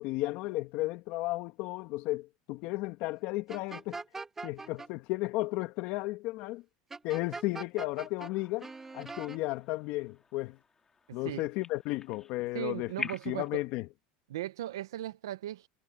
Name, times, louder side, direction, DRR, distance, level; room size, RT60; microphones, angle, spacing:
voice 1, 0.0-4.0 4.4-6.6 7.0-8.7 8.9-10.6 11.1-12.9 13.2-13.9, left 20 dB, 65° left, 1.5 m, -34 dB
sound 1, 3.5-4.9 6.9-8.3 8.6-9.4, right 3 dB, 15° right, 1.7 m, -42 dB
sound 2, 8.2-13.5, left 5 dB, 20° left, 3.7 m, -46 dB
voice 2, 11.1-11.5 12.5-13.6 14.3-15.7, right 13 dB, 90° right, 1.1 m, -37 dB
supercardioid pair, 105°, 2 cm